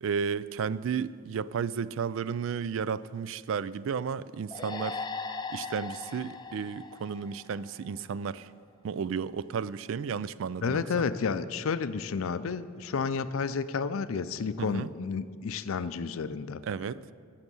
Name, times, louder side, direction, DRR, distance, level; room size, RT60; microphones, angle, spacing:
voice 1, 0.0-5.0 5.5-8.5 8.8-10.8 14.6-14.9 16.6-17.0, right 6 dB, 65° right, 0.3 m, -33 dB
sound 1, 4.5-8.0, left 4 dB, 20° left, 0.4 m, -39 dB
voice 2, 10.6-16.6, left 5 dB, 75° left, 0.5 m, -31 dB
16.0 x 6.7 x 5.4 m
head